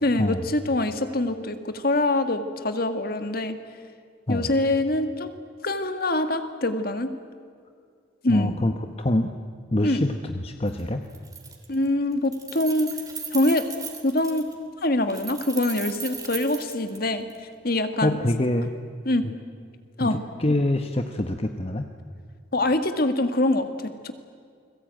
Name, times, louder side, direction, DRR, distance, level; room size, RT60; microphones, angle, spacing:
voice 1, 0.0-3.6 4.3-5.3 5.6-7.1 8.2-8.6 9.8-10.0 11.7-12.9 13.3-13.6 14.0-14.5 14.8-17.3 17.6-18.2 19.1-19.3 20.0-20.2 22.5-24.1, left 1 dB, 50° left, 8 dB, 1.9 m, -24 dB
voice 2, 8.3-9.3 9.7-11.1 18.0-18.7 19.2-19.3 20.0-21.9, left 1 dB, 30° left, 6 dB, 1.0 m, -25 dB
Keys jangling, 10.7-10.8 11.1-11.9 12.1-14.5 15.1-17.4, right 6 dB, 20° right, 3.3 m, -37 dB
29.5 x 21.5 x 9.1 m, 2.2 s
head